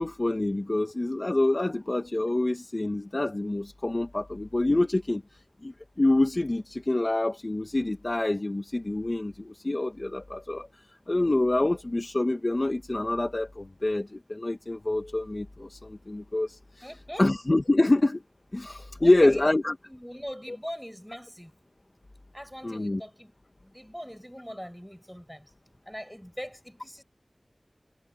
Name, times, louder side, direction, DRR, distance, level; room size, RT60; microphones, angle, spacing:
voice 1, 0.0-5.2 5.6-10.7 11.1-16.9 17.2-18.2 18.5-19.7 20.5-20.6 22.6-23.0, left 2 dB, 50° left, 1.3 m, -26 dB
voice 2, 16.8-17.3 18.7-19.6 19.9-21.5 22.3-23.3 23.6-25.5 25.9-27.0, equal, 5° left, 5.9 m, -41 dB
wide cardioid pair, 40°, 0 cm